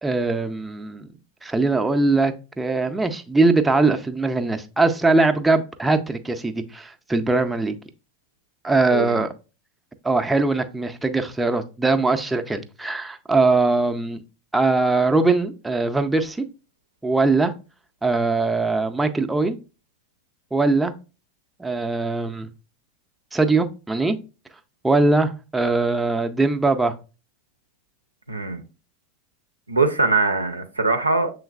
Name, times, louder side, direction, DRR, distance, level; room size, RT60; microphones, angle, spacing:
voice 1, 0.0-1.1 1.4-7.8 8.6-9.3 10.0-14.2 14.5-16.4 17.0-17.5 18.0-19.6 20.5-20.9 21.6-22.5 23.3-24.2 24.8-26.9, right 3 dB, 10° right, 0.5 m, -21 dB
voice 2, 8.9-9.2 28.3-28.6 29.7-31.3, right 3 dB, 85° right, 0.5 m, -22 dB
7.0 x 3.1 x 2.4 m
figure-of-eight pair, 85°, 0 cm